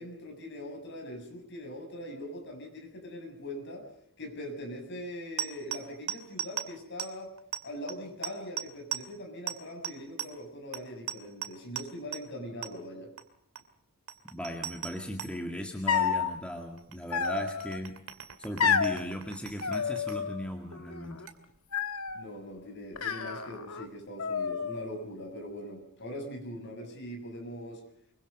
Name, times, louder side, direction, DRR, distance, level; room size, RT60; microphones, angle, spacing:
voice 1, 0.0-3.9 4.2-7.3 7.6-13.1 22.1-27.8, left 1 dB, 50° left, 4 dB, 7.2 m, -41 dB
sound 1, 5.4-6.7 7.0-7.1 7.4-7.6 7.9-8.0 8.2-8.7 8.9-9.0 9.5-9.6 9.8-9.9 10.2-10.3 10.7-10.8 11.1-11.5 11.7-11.8 12.1-12.2 12.6-12.7 13.2-13.3 13.5-13.6 14.1-15.3 16.3-16.4 16.8-20.2 21.3-21.4, right 10 dB, 70° right, 2.5 m, -37 dB
voice 2, 14.3-18.0 18.4-21.2, equal, 5° left, 2 dB, 2.1 m, -37 dB
sound 2, 15.9-16.3 17.1-17.8 18.6-19.0 19.6-20.4 20.7-21.3 21.7-22.3 23.0-23.9 24.2-24.9, left 6 dB, 70° left, 1.8 m, -30 dB
25.0 x 24.0 x 5.4 m, 0.72 s
head